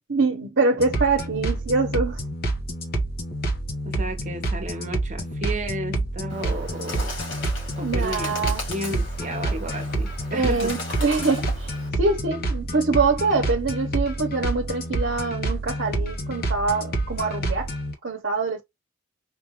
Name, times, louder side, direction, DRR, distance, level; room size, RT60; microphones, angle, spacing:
voice 1, 0.1-2.2 7.8-8.6 10.3-17.7 18.0-18.6, right 3 dB, 65° right, 0.9 m, -24 dB
sound 1, 0.8-17.9, right 1 dB, 45° left, 1.0 m, -28 dB
voice 2, 3.8-7.1 7.8-10.8, right 1 dB, 35° right, 1.0 m, -33 dB
Bird, 6.3-11.9, left 2 dB, 85° left, 2.9 m, -37 dB
5.0 x 2.5 x 3.0 m
head